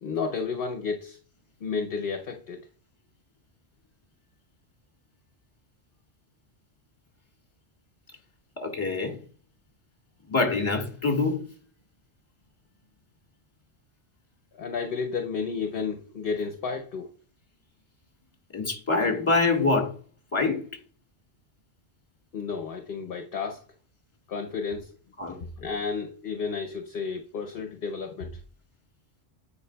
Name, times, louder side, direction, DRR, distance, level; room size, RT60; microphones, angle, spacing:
voice 1, 0.0-1.2 1.6-2.6 14.6-17.1 22.3-23.6 24.3-24.9 25.4-28.3, left 5 dB, 55° left, 0.8 m, -32 dB
voice 2, 8.6-9.1 10.3-11.4 18.5-19.9 20.3-20.6 25.2-25.4, left 3 dB, 25° left, 1.5 m, -25 dB
9.3 x 4.9 x 2.2 m
omnidirectional pair, 1.2 m